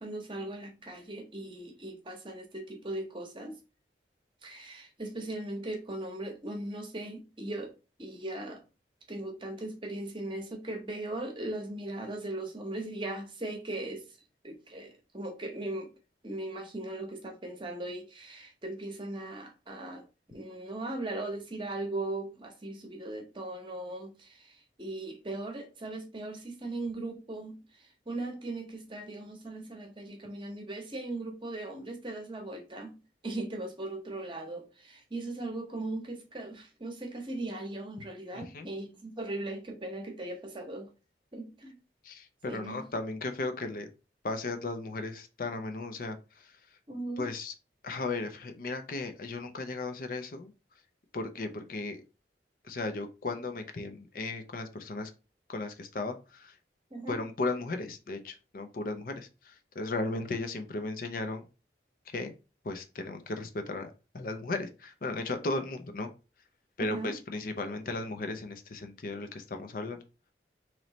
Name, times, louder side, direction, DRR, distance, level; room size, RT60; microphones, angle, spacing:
voice 1, 0.0-3.6 4.4-7.7 8.0-8.6 9.1-14.1 14.4-15.9 16.2-20.1 20.3-33.0 33.2-40.9 41.3-41.7 42.5-42.8 46.9-47.3 56.9-57.2 66.8-67.1, right 2 dB, 25° right, 0.8 m, -38 dB
voice 2, 38.3-38.7 42.0-43.9 44.2-46.6 47.2-47.5 47.8-50.5 51.1-52.0 52.6-55.1 55.5-56.5 57.1-61.4 62.1-62.3 62.6-66.1 66.8-70.0, left 3 dB, 50° left, 0.5 m, -36 dB
3.1 x 3.0 x 3.9 m
head